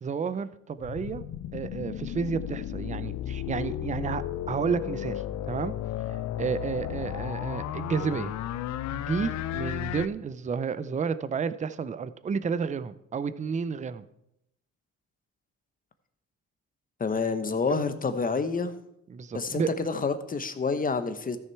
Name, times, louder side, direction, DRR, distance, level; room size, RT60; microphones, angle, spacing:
voice 1, 0.0-1.2 1.5-5.7 6.4-8.3 8.9-14.0 19.1-19.7, right 6 dB, 25° right, 14 dB, 0.5 m, -31 dB
sound 1, 0.8-10.1, left 12 dB, 65° left, 0.5 m, -34 dB
voice 2, 17.0-18.7 19.3-21.4, left 4 dB, 30° left, 10 dB, 1.0 m, -28 dB
13.5 x 6.4 x 4.6 m, 0.81 s
cardioid pair, 90°, 30 cm